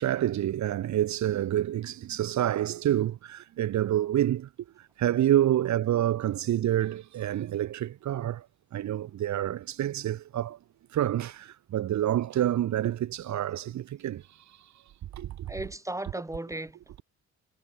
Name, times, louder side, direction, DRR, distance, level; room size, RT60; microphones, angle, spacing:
voice 1, 0.0-4.5 4.8-8.5 8.7-10.6 10.9-14.7 15.1-15.5, right 12 dB, 70° right, 1.6 m, -28 dB
voice 2, 15.5-17.0, right 1 dB, 10° right, 5.3 m, -36 dB
cardioid pair, 90°, 30 cm